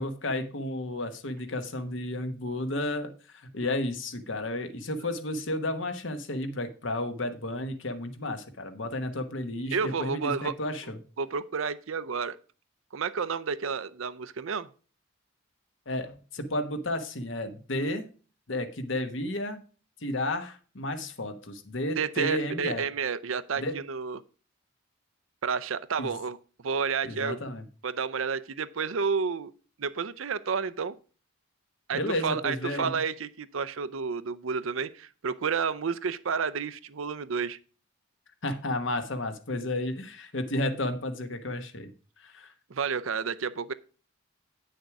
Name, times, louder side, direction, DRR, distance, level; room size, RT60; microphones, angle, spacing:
voice 1, 0.0-11.0 15.9-18.1 18.5-19.6 20.0-22.8 23.6-23.8 26.0-26.1 27.0-27.7 31.9-33.0 38.4-41.9 42.2-42.5, left 1 dB, 65° left, 9 dB, 1.2 m, -32 dB
voice 2, 9.7-10.6 11.2-12.4 12.9-14.7 22.0-24.2 25.4-26.4 26.6-27.4 27.8-29.5 29.8-31.0 31.9-37.6 42.7-43.7, right 5 dB, 75° right, 14 dB, 0.6 m, -30 dB
9.3 x 6.5 x 4.7 m, 0.38 s
head